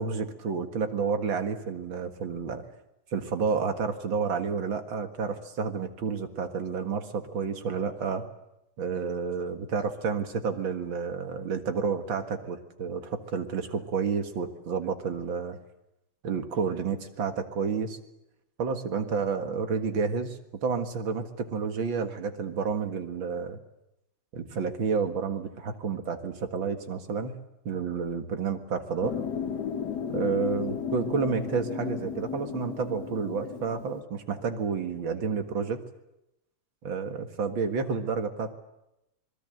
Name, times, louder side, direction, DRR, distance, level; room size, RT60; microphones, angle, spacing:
voice 1, 0.0-2.6 3.1-8.2 8.8-15.6 16.2-18.0 18.6-23.6 24.3-29.2 30.1-35.8 36.8-38.5, right 5 dB, 65° right, 7 dB, 2.4 m, -30 dB
sound 1, 29.0-34.0, left 7 dB, 55° left, 1.5 m, -34 dB
26.0 x 21.0 x 7.8 m, 0.89 s
omnidirectional pair, 2.4 m